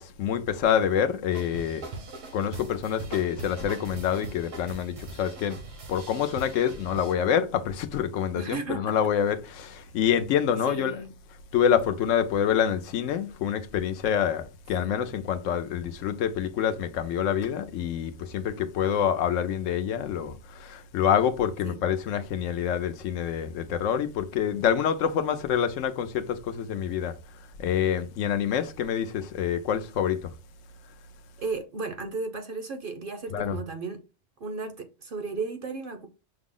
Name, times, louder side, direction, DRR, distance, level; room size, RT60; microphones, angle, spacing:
voice 1, 0.0-1.8 2.3-5.6 5.9-11.0 11.5-27.1 27.6-30.3 33.3-33.6, left 8 dB, 80° left, 1.0 m, -26 dB
sound 1, 1.3-7.1, right 2 dB, 80° right, 1.3 m, -41 dB
voice 2, 8.4-9.0 10.7-11.1 21.6-21.8 31.4-34.0 34.4-36.1, right 4 dB, 55° right, 0.7 m, -34 dB
5.5 x 2.0 x 3.6 m
omnidirectional pair, 1.3 m